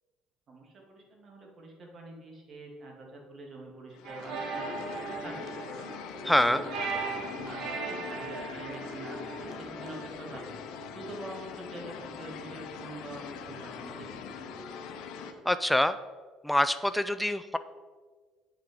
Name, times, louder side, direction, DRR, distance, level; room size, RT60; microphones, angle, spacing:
voice 1, 0.5-5.7 6.4-6.6 6.9-10.5 10.9-14.2, right 2 dB, 40° right, 0 dB, 2.1 m, -45 dB
sound 1, 3.9-15.3, left 5 dB, 75° left, 0.9 m, -42 dB
sound 2, 4.0-10.1, right 4 dB, 65° right, 1.4 m, -38 dB
voice 2, 6.2-6.6 15.5-16.0 16.4-17.6, left 1 dB, 5° left, 10 dB, 0.3 m, -25 dB
8.7 x 5.7 x 5.3 m, 1.5 s
cardioid pair, 120°, 0 cm